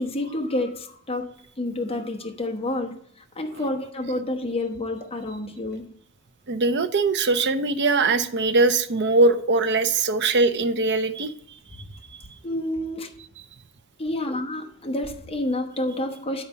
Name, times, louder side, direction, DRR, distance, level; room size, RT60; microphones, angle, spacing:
voice 1, 0.0-2.9 3.3-5.9 12.4-13.1 14.0-16.4, left 1 dB, 25° left, 1 dB, 1.1 m, -29 dB
voice 2, 6.5-11.3, right 3 dB, 55° right, 9 dB, 0.7 m, -21 dB
10.0 x 4.3 x 5.5 m, 0.64 s
head